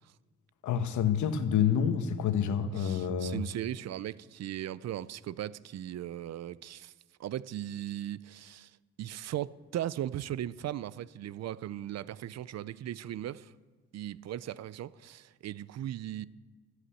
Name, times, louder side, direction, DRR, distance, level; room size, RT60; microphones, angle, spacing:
voice 1, 0.6-3.4, left 8 dB, 75° left, 1.2 m, -28 dB
voice 2, 2.7-6.9 7.2-8.7 9.0-13.5 13.9-16.3, right 12 dB, 60° right, 0.6 m, -38 dB
14.0 x 8.1 x 8.4 m
cardioid pair, 90°, 30 cm